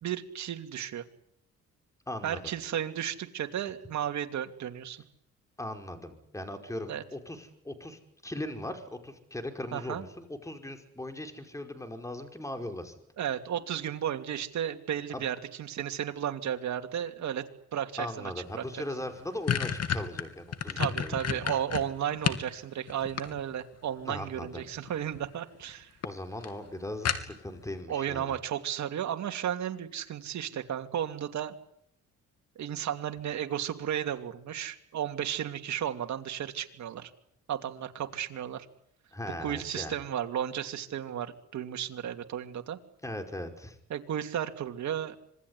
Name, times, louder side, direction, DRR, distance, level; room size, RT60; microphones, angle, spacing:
voice 1, 0.0-1.0 2.2-5.0 6.9-7.0 9.7-10.1 13.2-18.6 20.8-25.9 27.9-31.6 32.6-37.1 37.5-38.7 39.3-42.8 43.9-45.2, right 10 dB, 65° right, 6 dB, 2.8 m, -34 dB
voice 2, 2.1-2.6 5.6-12.9 15.1-15.2 18.0-21.4 24.1-24.7 26.0-28.3 39.1-40.0 43.0-43.8, left 1 dB, 10° left, 5 dB, 5.3 m, -39 dB
sound 1, 18.6-18.7 19.0-22.5 22.9-23.7 24.8-25.3 25.6-25.7 26.0-26.1 26.4-26.5 27.0-27.6, left 8 dB, 55° left, 2.9 m, -30 dB
26.5 x 20.5 x 9.9 m, 0.72 s
cardioid pair, 90°, 30 cm